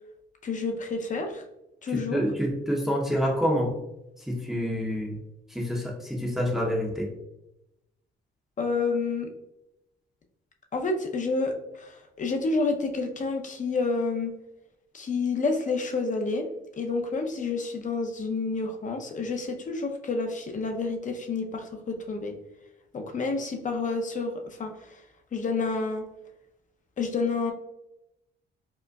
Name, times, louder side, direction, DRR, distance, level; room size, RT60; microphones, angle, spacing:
voice 1, 0.4-1.4 1.8-2.2 8.6-9.3 10.7-14.3 14.9-16.5 16.8-22.3 22.9-25.0 25.3-26.1 27.0-27.5, left 3 dB, 40° left, 4 dB, 0.6 m, -29 dB
voice 2, 1.9-3.7 4.3-5.2 5.5-7.1, equal, ahead, -2 dB, 0.7 m, -27 dB
5.0 x 2.1 x 2.3 m, 0.88 s
cardioid pair, 90°, 20 cm